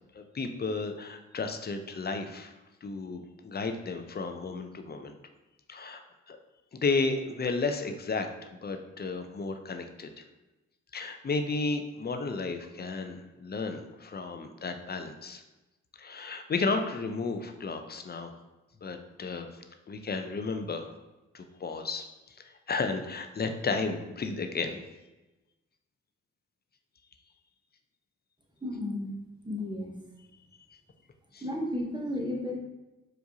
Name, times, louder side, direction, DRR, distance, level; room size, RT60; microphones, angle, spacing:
voice 1, 0.1-2.5 2.8-5.1 5.7-6.0 6.3-6.4 6.7-8.3 8.6-10.2 10.9-15.4 16.0-18.3 18.8-19.5 19.9-20.9 21.3-22.0 22.7-24.8 31.3-31.4, left 4 dB, 30° left, 6 dB, 0.5 m, -33 dB
voice 2, 28.6-29.2 29.4-29.9 31.4-32.6, left 1 dB, 15° right, 0 dB, 0.9 m, -33 dB
4.7 x 2.5 x 2.8 m, 1.1 s
supercardioid pair, 50°, 31 cm